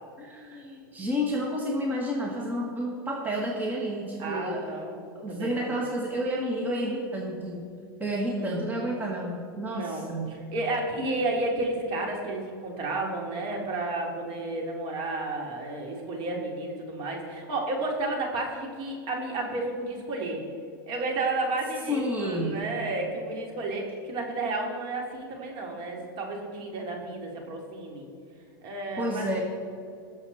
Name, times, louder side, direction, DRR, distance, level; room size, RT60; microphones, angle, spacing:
voice 1, 0.2-7.7 8.0-10.5 21.9-22.6 29.0-29.4, equal, 15° right, -2 dB, 1.7 m, -30 dB
voice 2, 4.2-5.0 5.3-5.7 8.2-8.5 9.7-20.4 20.9-28.1 28.6-29.3, right 2 dB, 45° right, 0 dB, 3.1 m, -32 dB
20.5 x 7.3 x 4.2 m, 2.4 s
hypercardioid pair, 120°, 12 cm